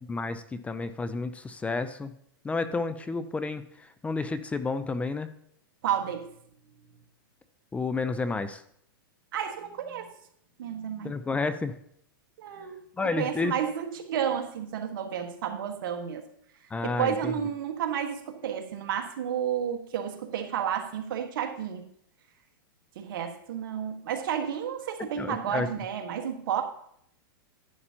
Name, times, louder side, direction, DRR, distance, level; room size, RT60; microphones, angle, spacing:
voice 1, 0.1-2.1 2.4-5.3 7.7-8.6 11.0-11.7 13.0-13.5 16.7-17.3 25.2-25.7, left 3 dB, 10° left, 12 dB, 0.5 m, -31 dB
voice 2, 5.8-6.3 9.3-10.1 10.6-11.1 12.4-12.8 13.2-16.2 16.8-21.8 22.9-26.6, right 8 dB, 65° right, 5 dB, 1.5 m, -31 dB
11.0 x 10.0 x 2.8 m, 0.68 s
hypercardioid pair, 125°, 12 cm